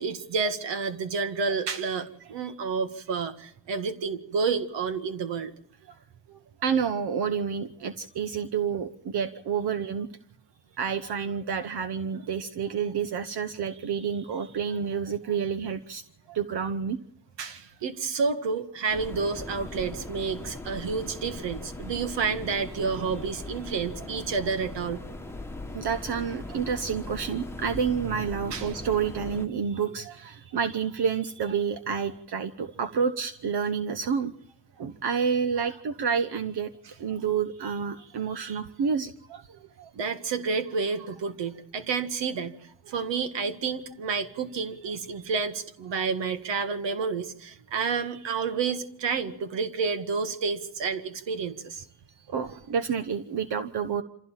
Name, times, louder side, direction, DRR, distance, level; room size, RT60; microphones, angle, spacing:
voice 1, 0.0-5.5 17.4-25.0 28.5-28.7 38.4-38.6 39.9-42.6 42.9-51.8, right 5 dB, 80° right, 9 dB, 2.0 m, -30 dB
voice 2, 6.3-10.1 10.8-16.0 16.3-17.0 25.7-34.3 34.8-36.7 37.0-39.9 52.3-54.0, right 6 dB, 60° right, 10 dB, 1.2 m, -29 dB
sound 1, 18.9-29.5, left 2 dB, 5° left, 1.3 m, -39 dB
26.0 x 16.0 x 7.4 m, 0.75 s
cardioid pair, 105°, 43 cm